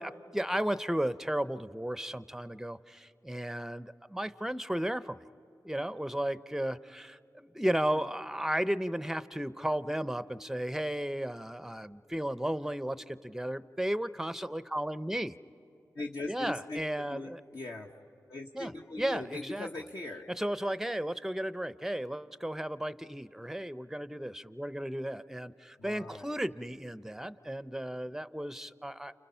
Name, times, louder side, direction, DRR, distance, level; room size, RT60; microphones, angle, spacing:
voice 1, 0.0-5.2 5.6-15.4 16.3-17.4 18.5-18.7 19.0-19.7 20.4-29.1, right 1 dB, 5° right, 14 dB, 0.7 m, -34 dB
voice 2, 15.9-17.9 18.3-20.2 25.8-26.4, left 2 dB, 55° left, -1 dB, 1.2 m, -40 dB
30.0 x 28.0 x 5.7 m, 2.9 s
cardioid pair, 55°, 7 cm